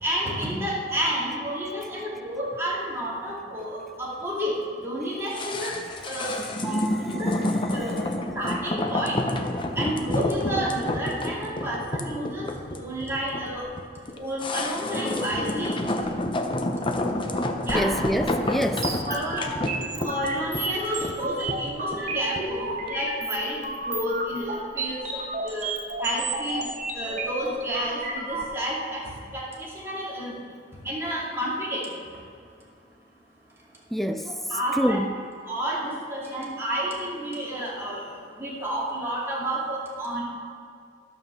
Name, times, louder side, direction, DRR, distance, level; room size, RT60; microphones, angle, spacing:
voice 1, 0.0-5.8 6.0-7.4 7.7-8.0 8.3-9.2 9.8-13.7 14.1-15.8 17.6-17.9 19.1-19.4 19.9-25.7 26.0-26.7 26.9-30.3 30.8-31.9 34.2-35.1 35.5-38.1 38.4-40.2, equal, 15° right, -6 dB, 2.5 m, -30 dB
sound 1, 5.3-22.6 22.9-23.0, left 1 dB, 30° left, 0.7 m, -29 dB
voice 2, 17.8-18.9 33.9-34.4 34.8-35.1, equal, ahead, 8 dB, 0.3 m, -26 dB
sound 2, 18.8-28.4, right 2 dB, 45° right, 1.2 m, -32 dB
11.5 x 5.5 x 6.8 m, 2.3 s
head